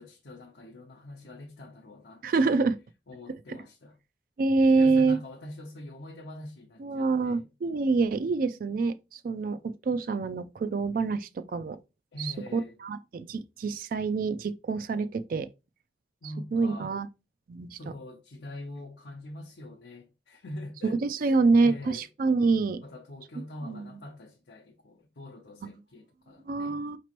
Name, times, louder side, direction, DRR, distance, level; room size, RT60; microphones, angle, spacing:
voice 1, 0.0-2.5 3.1-4.0 4.7-7.5 12.1-12.8 16.2-17.0 17.7-22.1 22.8-26.8, left 1 dB, 70° left, 0.8 m, -44 dB
voice 2, 2.2-2.8 3.5-3.6 4.4-5.2 6.8-11.8 12.2-15.5 16.5-17.1 17.5-17.8 20.8-22.8 23.7-23.8 25.6-25.7 26.5-27.0, right 4 dB, 50° right, 0.3 m, -26 dB
5.0 x 3.0 x 3.0 m
head